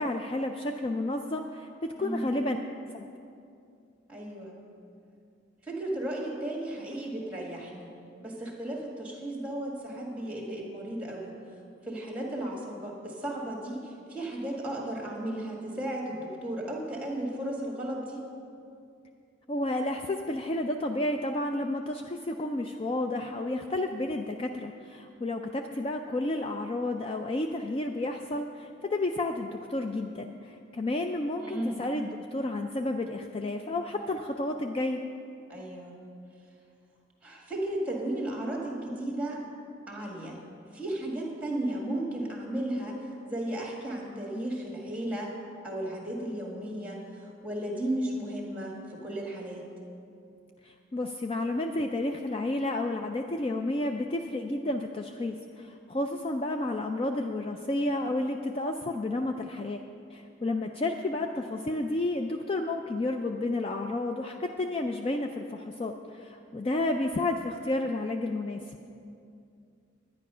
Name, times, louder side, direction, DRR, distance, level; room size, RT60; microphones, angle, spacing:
voice 1, 0.0-2.6 2.9-3.1 19.5-35.0 50.6-59.8 60.1-68.6, left 2 dB, 30° left, 4 dB, 0.3 m, -31 dB
voice 2, 1.9-2.3 4.1-4.6 5.6-7.9 8.2-11.3 11.8-18.3 31.4-31.9 35.5-36.0 37.2-39.4 39.9-40.4 40.7-43.0 43.2-45.3 45.6-49.7, right 1 dB, 5° right, -1 dB, 1.8 m, -34 dB
10.5 x 9.8 x 5.6 m, 2.5 s
head